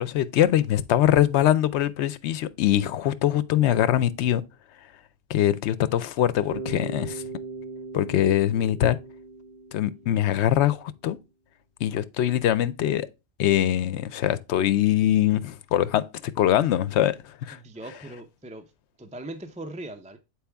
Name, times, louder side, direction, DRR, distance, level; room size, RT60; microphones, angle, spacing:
voice 1, 0.0-4.4 5.3-7.2 7.9-9.0 9.7-11.2 11.8-13.1 13.4-17.1 17.4-17.6, left 12 dB, 80° left, 0.9 m, -23 dB
Bass guitar, 6.5-10.6, right 4 dB, 60° right, 3.3 m, -39 dB
voice 2, 17.5-18.6 19.0-20.2, right 1 dB, 10° right, 0.4 m, -39 dB
7.0 x 4.7 x 3.4 m
omnidirectional pair, 1.1 m